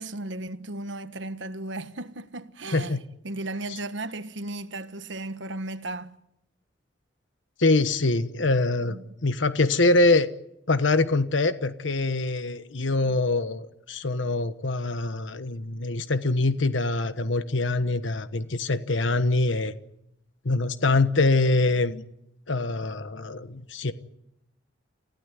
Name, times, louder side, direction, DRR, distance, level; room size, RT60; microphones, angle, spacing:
voice 1, 0.0-6.2 8.8-9.1, right 2 dB, 70° right, 1.3 m, -35 dB
voice 2, 2.7-3.0 3.7-3.8 7.6-9.0 9.2-10.3 10.7-19.7 20.4-22.0 22.5-23.9, left 2 dB, 80° left, 1.2 m, -24 dB
29.5 x 16.0 x 9.9 m
head